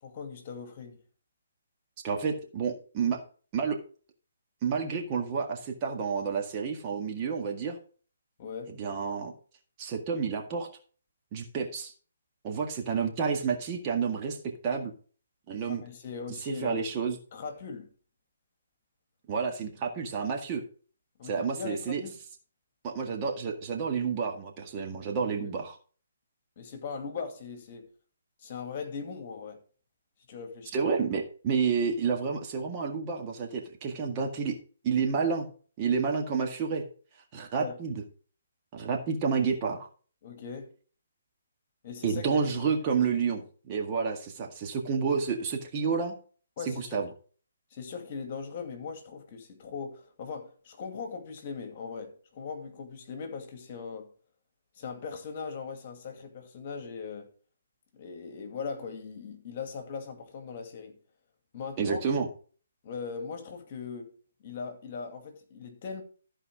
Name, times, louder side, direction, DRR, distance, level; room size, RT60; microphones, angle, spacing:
voice 1, 0.0-1.0 8.4-8.7 15.6-16.9 17.3-17.9 21.2-22.2 26.6-27.9 28.4-29.6 30.3-30.9 37.5-37.7 40.2-40.7 41.8-42.5 46.6-47.0 47.7-54.1 54.8-57.3 57.9-61.0 61.5-62.0 62.8-64.1 64.4-66.0, left 5 dB, 40° left, 2.4 m, -39 dB
voice 2, 2.0-3.2 3.5-3.8 4.6-7.8 8.8-9.3 9.8-10.7 11.3-11.9 12.4-14.4 14.6-14.9 15.5-15.8 16.5-17.2 19.3-20.6 21.2-22.0 22.8-25.8 30.7-34.6 34.8-35.5 35.8-36.8 37.3-38.0 38.7-39.9 42.0-46.2 46.7-47.1 61.8-62.3, right 6 dB, 30° right, 1.8 m, -30 dB
14.0 x 4.8 x 4.8 m
figure-of-eight pair, 140°, 0 cm